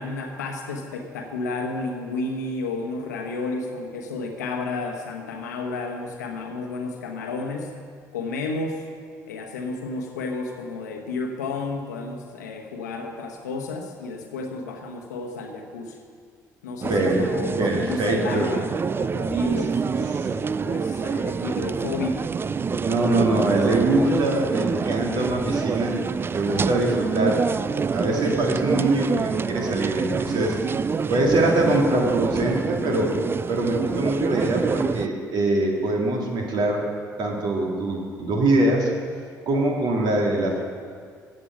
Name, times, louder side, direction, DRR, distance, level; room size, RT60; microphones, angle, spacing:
voice 1, 0.0-7.7 8.1-8.8 9.3-16.0 16.6-22.3, left 3 dB, 80° left, 3 dB, 1.1 m, -32 dB
sound 1, 16.8-35.1, right 5 dB, 25° right, 0.3 m, -26 dB
voice 2, 16.9-17.3 17.6-18.5 22.6-26.0 26.3-27.5 27.9-30.6 31.1-33.1 33.5-36.9 37.2-38.9 39.5-40.6, right 1 dB, 55° right, 0 dB, 2.2 m, -23 dB
14.0 x 8.3 x 5.8 m, 2.1 s
figure-of-eight pair, 50°, 9 cm